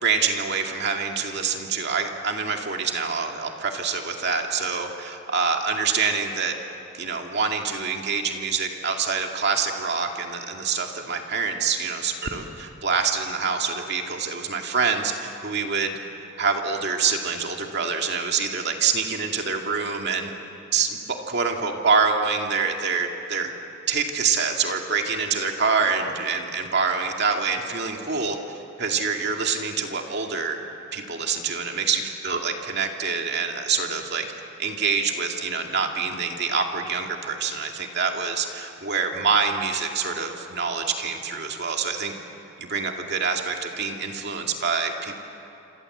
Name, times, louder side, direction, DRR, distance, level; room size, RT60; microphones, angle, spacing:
voice 1, 0.0-6.5 6.9-20.3 20.7-21.0 21.3-23.5 23.9-28.4 28.8-30.6 30.9-34.2 34.6-42.1 42.6-45.2, right 5 dB, 50° right, 2 dB, 2.3 m, -26 dB
27.5 x 27.0 x 8.0 m, 2.9 s
head